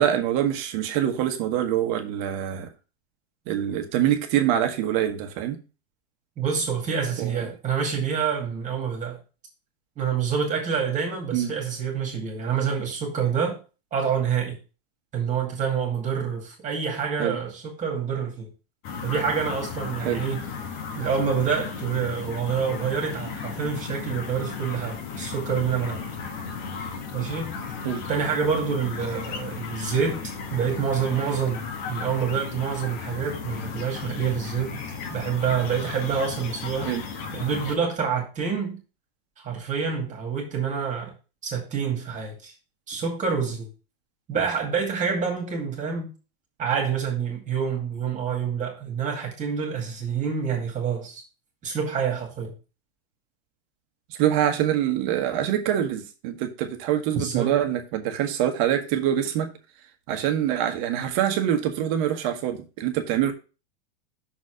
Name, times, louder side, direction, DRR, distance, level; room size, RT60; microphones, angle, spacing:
voice 1, 0.0-2.7 3.5-5.6 7.2-7.5 11.3-11.5 17.2-17.4 20.0-20.3 27.8-28.0 36.8-37.0 54.1-59.5 60.1-63.3, right 10 dB, 45° right, 1.2 m, -25 dB
voice 2, 6.4-9.2 10.0-13.6 13.9-14.6 15.1-18.5 19.0-20.4 20.9-26.1 27.1-27.5 28.1-30.2 30.5-34.8 35.1-36.9 37.3-38.8 39.4-41.1 41.4-42.5 42.9-43.7 44.3-46.1 46.6-51.2 51.6-52.5 57.1-57.5, right 6 dB, 25° right, 2.2 m, -27 dB
sound 1, 18.8-37.8, left 5 dB, 50° left, 1.7 m, -35 dB
6.3 x 4.2 x 6.3 m
hypercardioid pair, 135°, 30 cm